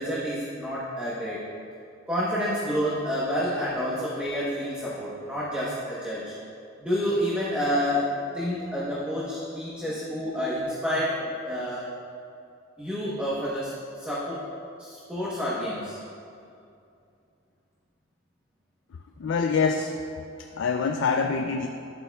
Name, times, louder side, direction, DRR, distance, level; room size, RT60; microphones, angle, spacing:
voice 1, 0.0-1.4 2.1-6.3 6.8-11.9 12.8-13.7 14.0-14.4 14.8-16.0, equal, 5° right, -8 dB, 1.0 m, -29 dB
voice 2, 19.2-20.0 20.6-21.7, left 5 dB, 70° left, 5 dB, 0.4 m, -25 dB
11.0 x 8.5 x 2.3 m, 2.5 s
head